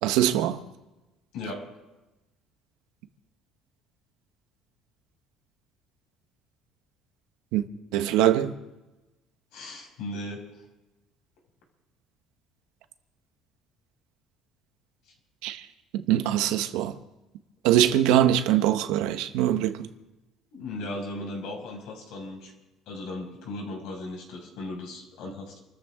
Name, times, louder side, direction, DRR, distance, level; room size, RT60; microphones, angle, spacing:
voice 1, 0.0-0.6 7.5-7.6 7.9-8.5 15.4-15.6 16.1-16.9 17.6-19.8, right 12 dB, 90° right, 1.2 m, -22 dB
voice 2, 1.3-1.7 9.5-10.4 20.5-22.5 22.9-25.6, left 2 dB, 75° left, 5.9 m, -37 dB
28.0 x 14.0 x 3.8 m
cardioid pair, 135°, 0 cm